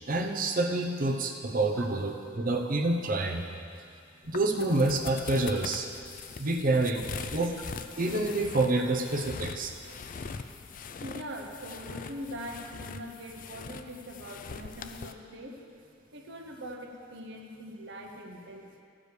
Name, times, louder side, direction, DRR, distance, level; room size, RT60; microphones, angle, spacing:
voice 1, 0.1-3.4 4.3-5.9 6.4-7.0 7.3-7.5 8.0-9.7, right 2 dB, 45° right, 3 dB, 0.8 m, -27 dB
sound 1, 4.2-15.1, left 5 dB, 45° left, 0.4 m, -42 dB
voice 2, 11.0-15.6 16.1-18.8, equal, 65° right, 2 dB, 1.1 m, -42 dB
14.0 x 5.0 x 6.6 m, 2.5 s
head